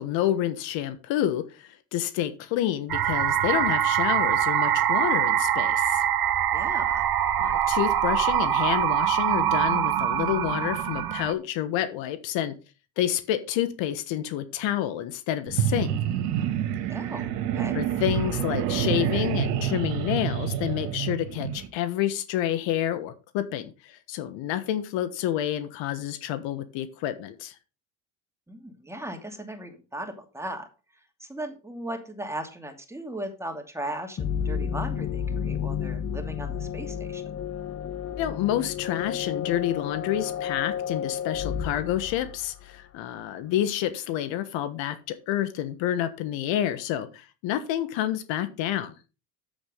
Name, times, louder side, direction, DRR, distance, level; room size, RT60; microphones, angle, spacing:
voice 1, 0.0-6.0 7.4-12.5 13.0-15.9 17.7-27.5 38.2-49.0, left 12 dB, 65° left, 1.4 m, -29 dB
sound 1, 2.9-11.3, right 10 dB, 50° right, 1.3 m, -24 dB
voice 2, 6.5-7.0 16.9-17.8 28.5-30.7 31.2-37.2, right 1 dB, 5° right, 2.6 m, -37 dB
sound 2, 15.5-21.7, right 9 dB, 85° right, 1.8 m, -28 dB
sound 3, 34.2-42.8, left 8 dB, 30° left, 1.1 m, -32 dB
7.9 x 7.4 x 5.1 m
supercardioid pair, 80°, 48 cm